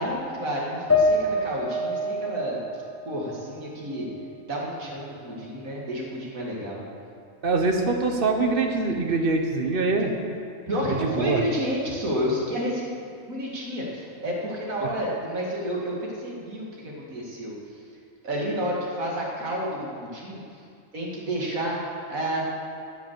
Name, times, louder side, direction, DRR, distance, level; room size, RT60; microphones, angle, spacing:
voice 1, 0.0-2.6 3.1-4.1 4.5-6.8 10.7-12.9 13.3-17.8 18.2-20.6 20.9-22.4, equal, 75° right, -3 dB, 2.5 m, -30 dB
sound 1, 0.9-4.3 4.7-5.7, left 1 dB, 10° left, 1.1 m, -28 dB
voice 2, 7.4-10.1 10.9-11.4, right 3 dB, 45° right, 3 dB, 1.2 m, -24 dB
14.5 x 5.6 x 7.4 m, 2.4 s
omnidirectional pair, 1.4 m